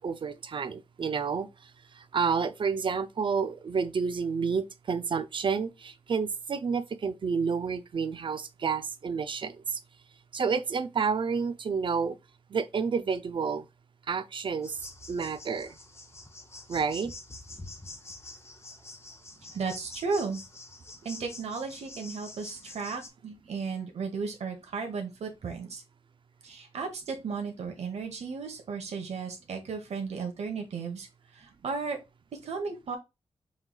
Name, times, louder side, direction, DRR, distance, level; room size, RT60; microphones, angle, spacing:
voice 1, 0.0-1.5 2.0-9.8 10.3-12.1 12.5-13.6 14.1-14.8 15.1-15.7 16.7-17.1, right 5 dB, 50° right, 0.5 m, -30 dB
sound 1, 14.6-23.1, left 2 dB, 25° left, 0.8 m, -46 dB
voice 2, 19.5-20.4 21.0-25.8 26.4-31.1 31.3-32.0 32.4-33.0, right 5 dB, 85° right, 1.0 m, -34 dB
5.5 x 3.1 x 2.3 m
wide cardioid pair, 140°, 11 cm